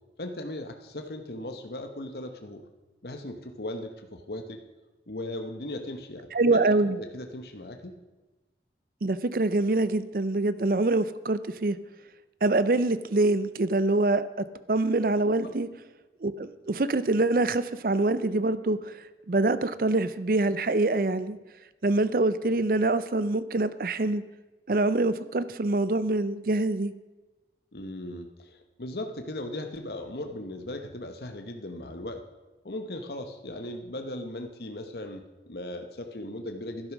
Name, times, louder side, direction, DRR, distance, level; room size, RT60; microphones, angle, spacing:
voice 1, 0.2-2.6 3.0-4.6 5.1-6.6 6.9-8.0 15.4-15.5 27.7-32.2 32.6-36.9, left 1 dB, 65° left, 5 dB, 1.1 m, -38 dB
voice 2, 6.3-7.0 9.0-11.8 12.4-15.7 16.2-19.0 19.3-21.4 21.8-24.2 24.7-26.9, right 2 dB, 55° right, 15 dB, 0.6 m, -25 dB
12.0 x 11.0 x 6.0 m, 1.2 s
head